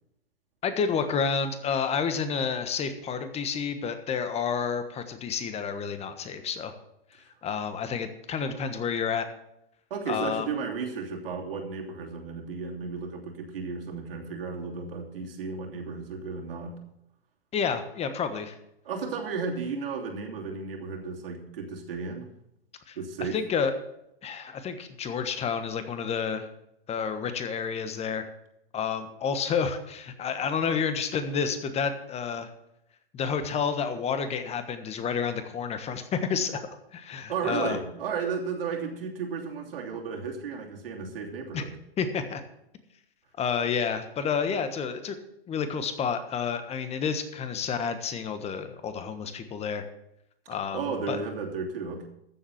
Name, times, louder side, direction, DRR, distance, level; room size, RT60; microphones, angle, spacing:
voice 1, 0.6-6.7 7.4-9.3 10.1-10.5 17.5-18.6 22.9-23.0 23.3-23.7 24.2-26.5 26.9-28.3 28.7-32.5 33.1-36.6 36.9-37.8 41.5-41.6 42.0-42.4 43.4-45.2 45.5-49.9 50.5-51.2, left 6 dB, 20° left, 9 dB, 1.3 m, -30 dB
voice 2, 9.9-16.8 18.8-22.3 23.0-23.4 37.3-41.7 50.4-52.1, right 5 dB, 70° right, 0 dB, 3.0 m, -34 dB
13.5 x 7.5 x 5.8 m, 0.81 s
hypercardioid pair, 115°, 30 cm